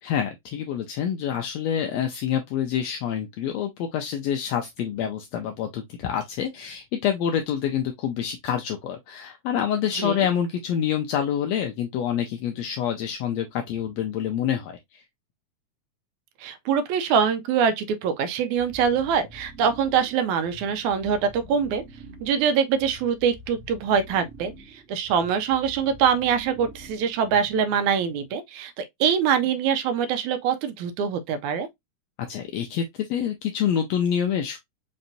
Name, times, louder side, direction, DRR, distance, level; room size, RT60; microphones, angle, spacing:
voice 1, 0.0-15.0 32.3-34.6, left 9 dB, 80° left, 1.6 m, -27 dB
voice 2, 16.4-21.8 22.2-31.7, right 7 dB, 80° right, 2.0 m, -24 dB
sound 1, 18.6-27.8, right 1 dB, 60° right, 0.7 m, -46 dB
5.4 x 2.9 x 2.6 m
omnidirectional pair, 3.5 m